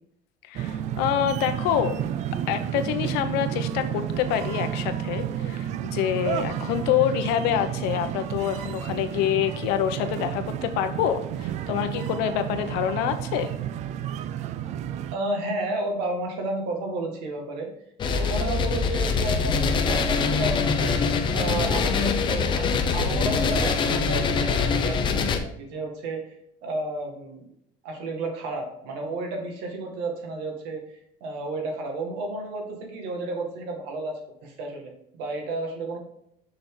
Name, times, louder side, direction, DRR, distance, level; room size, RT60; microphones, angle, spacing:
voice 1, 0.5-2.0 2.5-13.5, left 10 dB, 75° left, 9 dB, 0.9 m, -26 dB
sound 1, 0.5-15.1, right 10 dB, 45° right, 0.4 m, -31 dB
voice 2, 15.1-17.7 18.1-21.0 21.3-27.5 27.8-36.0, right 2 dB, 80° right, 2 dB, 2.1 m, -32 dB
sound 2, 18.0-25.4, left 5 dB, 30° left, 0.7 m, -24 dB
6.6 x 5.8 x 3.9 m, 0.72 s
cardioid pair, 165°, 17 cm